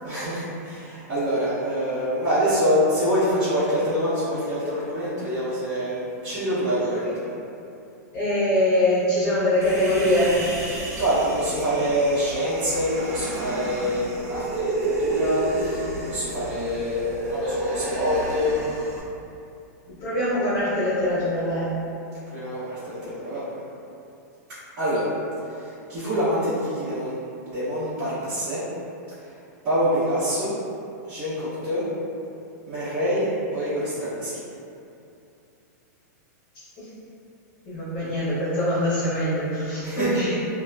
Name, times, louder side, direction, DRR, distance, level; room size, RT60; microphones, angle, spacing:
voice 1, 0.0-7.2 11.0-18.6 22.3-23.6 24.8-25.1 25.5-27.1 27.4-28.6 29.6-30.5 31.1-31.8 32.7-34.4 39.8-40.2, equal, 25° right, -19 dB, 1.1 m, -25 dB
voice 2, 8.1-10.5 20.0-21.7 36.8-36.9 37.6-40.3, left 1 dB, 30° left, -13 dB, 0.9 m, -23 dB
Human voice, 9.6-19.0, right 2 dB, 60° right, 0.5 m, -31 dB
2.8 x 2.2 x 2.3 m, 2.6 s
supercardioid pair, 170°, 9 cm